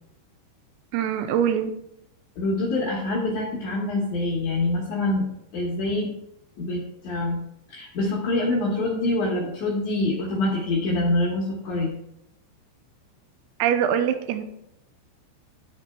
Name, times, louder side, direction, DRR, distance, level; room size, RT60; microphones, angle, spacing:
voice 1, 0.9-1.8 13.6-14.4, right 9 dB, 85° right, 9 dB, 2.5 m, -23 dB
voice 2, 2.4-6.2 6.6-7.4 7.7-11.9, left 2 dB, 65° left, -4 dB, 2.0 m, -25 dB
12.5 x 4.3 x 4.5 m, 0.77 s
omnidirectional pair, 5.2 m